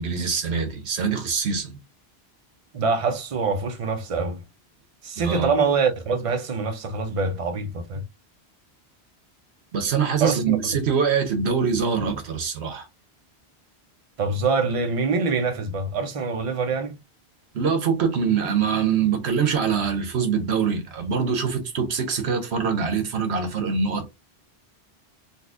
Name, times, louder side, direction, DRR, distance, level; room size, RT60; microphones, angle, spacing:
voice 1, 0.0-1.8 5.2-5.5 9.7-12.8 17.5-24.0, right 6 dB, 75° right, 1.1 m, -24 dB
voice 2, 2.7-4.4 5.0-8.0 10.2-10.6 14.2-17.0, right 4 dB, 45° right, 0.4 m, -25 dB
4.0 x 2.3 x 2.4 m
omnidirectional pair, 1.1 m